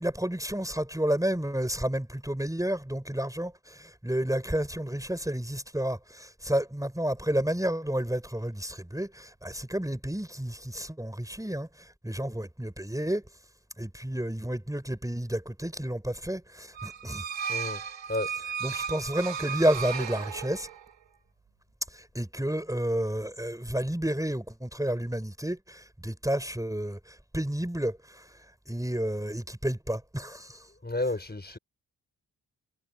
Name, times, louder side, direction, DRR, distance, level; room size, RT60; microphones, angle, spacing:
voice 1, 0.0-13.2 13.8-17.2 18.6-20.7 21.9-28.4 28.7-30.7, right 1 dB, 5° right, 4.9 m, -31 dB
sound 1, 16.7-20.9, right 7 dB, 70° right, 2.1 m, -35 dB
voice 2, 17.5-17.8 18.1-18.3 30.8-31.6, left 2 dB, 20° left, 5.8 m, -31 dB
hypercardioid pair, 40°, 45 cm